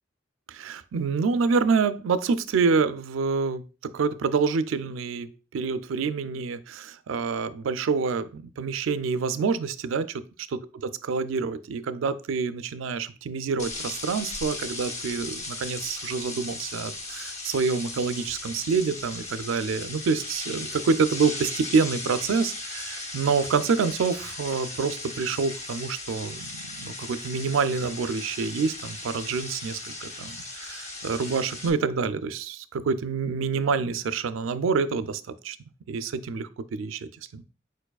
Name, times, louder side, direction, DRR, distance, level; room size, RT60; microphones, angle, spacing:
voice 1, 0.5-10.2 10.5-10.6 11.1-35.6 35.9-37.4, right 5 dB, 85° right, 13 dB, 0.4 m, -27 dB
sound 1, 13.6-31.7, left 2 dB, 35° left, 0.7 m, -37 dB
4.6 x 4.5 x 2.3 m, 0.34 s
head